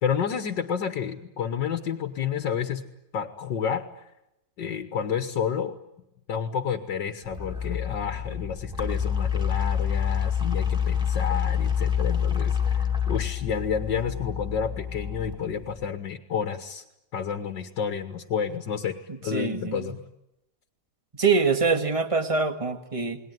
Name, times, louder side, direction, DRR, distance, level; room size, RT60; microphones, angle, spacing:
voice 1, 0.0-3.9 4.6-5.8 6.3-16.8 17.1-19.0 19.2-20.0, left 7 dB, 75° left, 7 dB, 2.0 m, -30 dB
sound 1, 7.2-15.8, left 8 dB, ahead, 2.6 m, -27 dB
voice 2, 19.3-19.9 21.2-23.2, right 4 dB, 20° right, 7 dB, 1.8 m, -24 dB
29.0 x 20.0 x 9.4 m, 0.90 s
omnidirectional pair, 2.0 m